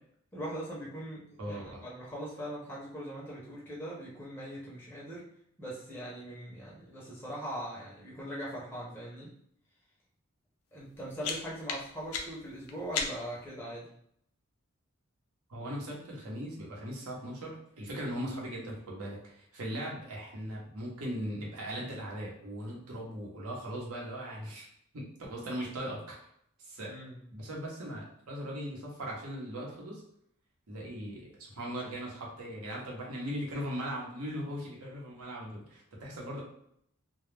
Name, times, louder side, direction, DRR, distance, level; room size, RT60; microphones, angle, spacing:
voice 1, 0.3-5.3 5.6-9.3 10.7-13.9 26.8-27.2, equal, 10° left, -6 dB, 0.5 m, -41 dB
voice 2, 1.4-1.8 15.5-24.7 24.9-25.0 25.3-26.2 26.6-26.9 27.3-30.0 30.7-36.4, equal, 85° right, -3 dB, 0.8 m, -39 dB
sound 1, 10.8-13.5, left 5 dB, 80° left, 0.4 m, -38 dB
2.2 x 2.0 x 3.1 m, 0.70 s
head